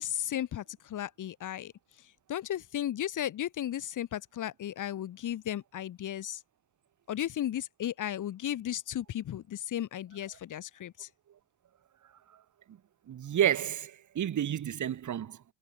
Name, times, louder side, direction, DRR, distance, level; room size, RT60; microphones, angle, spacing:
voice 1, 0.0-1.7 2.0-6.4 7.1-11.1, left 11 dB, 40° left, 0.7 m, -35 dB
voice 2, 13.1-15.4, right 10 dB, 40° right, 0.9 m, -30 dB
supercardioid pair, 65°, 47 cm